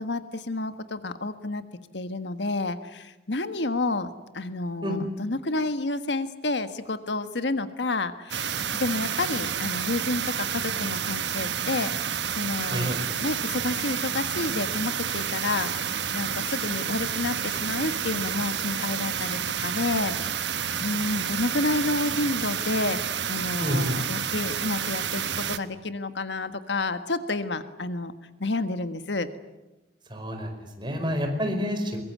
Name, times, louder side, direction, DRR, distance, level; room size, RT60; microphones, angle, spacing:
voice 1, 0.0-1.6 1.9-4.1 4.3-8.5 8.8-12.9 13.2-20.5 20.8-28.1 28.4-29.3, left 2 dB, 85° left, 10 dB, 1.5 m, -30 dB
sound 1, 8.3-25.6, right 8 dB, 80° right, 1.2 m, -30 dB
voice 2, 12.7-13.0 23.6-24.0 30.1-32.0, equal, 25° right, 4 dB, 5.0 m, -28 dB
23.0 x 22.5 x 9.6 m, 1.0 s
head